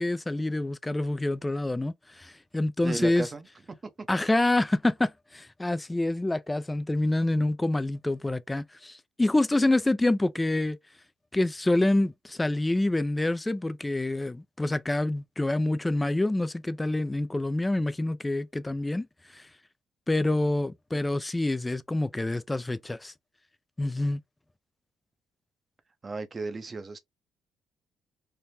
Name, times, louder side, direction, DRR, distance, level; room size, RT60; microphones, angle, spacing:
voice 1, 0.0-3.3 4.1-10.8 11.3-19.1 20.1-23.1 23.8-24.2, left 2 dB, 15° left, 0.3 m, -27 dB
voice 2, 2.8-3.5 4.0-4.1 26.0-27.0, right 3 dB, 30° right, 0.6 m, -34 dB
3.4 x 2.1 x 2.6 m
cardioid pair, 100°, 0 cm